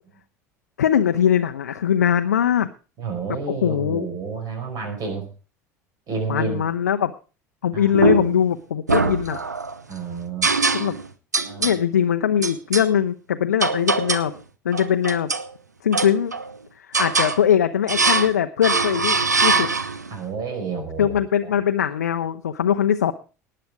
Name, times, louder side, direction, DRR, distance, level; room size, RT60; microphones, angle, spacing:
voice 1, 0.8-2.7 3.5-4.1 6.3-7.1 7.6-9.4 10.7-11.0 11.6-14.3 14.6-15.3 15.8-16.3 16.8-19.7 21.0-23.1, left 9 dB, 75° left, 7 dB, 0.6 m, -21 dB
voice 2, 3.0-5.3 6.1-6.6 7.7-8.1 9.9-10.5 11.4-11.7 20.1-21.5, right 5 dB, 45° right, 4 dB, 4.9 m, -30 dB
sound 1, 7.9-8.5 8.9-9.8 10.4-11.1 11.3-11.8 12.4-12.9 13.6-14.3 14.7-15.5 15.9-16.5 16.9-17.4 17.9-18.4 18.6-20.1, right 3 dB, 85° right, 0.7 m, -22 dB
18.5 x 7.7 x 4.8 m, 0.35 s
figure-of-eight pair, 65°, 9 cm